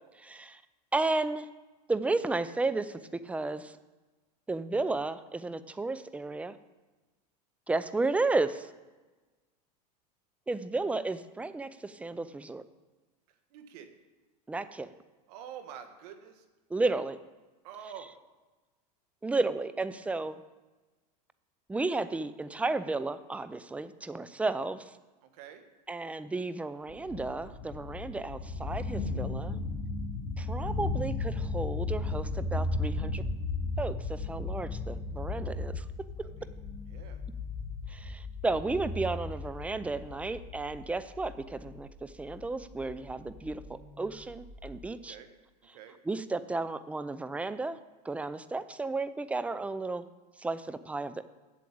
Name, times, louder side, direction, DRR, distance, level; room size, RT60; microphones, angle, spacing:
voice 1, 0.2-0.6 0.9-1.5 1.9-3.8 4.5-6.6 7.7-8.7 10.5-12.6 14.5-14.9 16.7-17.2 19.2-20.4 21.7-24.9 25.9-29.6 30.4-33.2 33.8-35.8 37.9-45.2 46.0-47.8 48.0-50.1 50.4-51.2, right 3 dB, 5° right, 13 dB, 0.4 m, -33 dB
voice 2, 13.5-13.9 15.3-16.4 17.6-18.1 25.2-25.6 35.4-35.7 36.2-36.5 36.9-37.2 45.1-45.3 45.7-46.0, right 9 dB, 70° right, 7 dB, 1.4 m, -47 dB
sound 1, 26.9-44.7, left 3 dB, 45° left, 1.8 m, -36 dB
7.8 x 7.4 x 8.5 m, 1.2 s
supercardioid pair, 115°, 21 cm